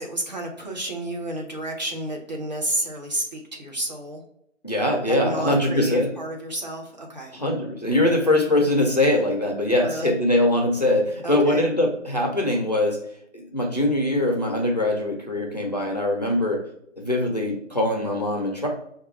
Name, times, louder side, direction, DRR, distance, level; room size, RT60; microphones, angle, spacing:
voice 1, 0.0-4.2 5.1-7.3 9.8-10.2 11.2-11.7, right 1 dB, 35° right, 0 dB, 0.7 m, -31 dB
voice 2, 4.6-6.1 7.3-13.0 13.3-16.6 17.0-18.7, left 1 dB, 35° left, 0 dB, 0.5 m, -22 dB
4.6 x 2.3 x 3.0 m, 0.72 s
figure-of-eight pair, 155°, 39 cm